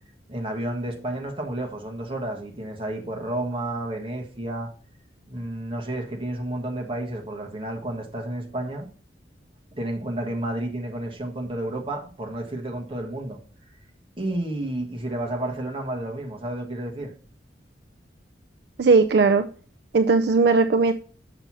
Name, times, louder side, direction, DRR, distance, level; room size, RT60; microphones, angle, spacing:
voice 1, 0.3-4.7 5.3-8.9 9.7-13.4 14.2-17.1, right 1 dB, 30° right, 1.4 m, -31 dB
voice 2, 18.8-19.4 19.9-20.9, right 4 dB, 60° right, 0.4 m, -18 dB
6.8 x 6.1 x 4.1 m
head